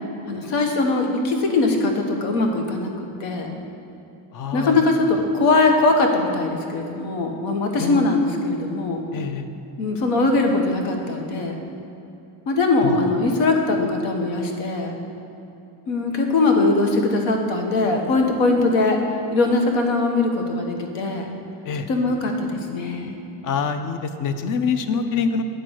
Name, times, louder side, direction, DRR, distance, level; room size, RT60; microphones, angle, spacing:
voice 1, 0.3-3.5 4.5-9.1 9.8-11.6 12.5-14.9 15.9-19.0 19.3-21.3 21.9-23.2, left 3 dB, 75° left, 3 dB, 1.2 m, -21 dB
voice 2, 4.3-4.8 7.8-8.1 9.1-9.5 12.8-13.0 21.7-21.9 23.4-25.4, left 6 dB, 45° left, 9 dB, 0.6 m, -25 dB
9.2 x 3.8 x 6.3 m, 2.9 s
cardioid pair, 120°, 46 cm